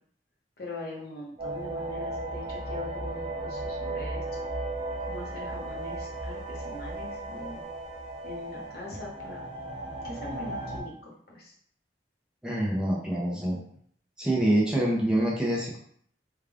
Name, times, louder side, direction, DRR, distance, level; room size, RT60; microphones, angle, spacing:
voice 1, 0.6-4.2 5.1-7.6 8.2-9.4 10.0-11.5, left 2 dB, 60° left, -3 dB, 1.0 m, -42 dB
sound 1, 1.4-10.8, right 2 dB, 35° right, 1.0 m, -35 dB
voice 2, 12.4-13.6 14.2-15.8, right 1 dB, 5° right, -5 dB, 0.6 m, -26 dB
3.5 x 2.3 x 3.4 m, 0.62 s
head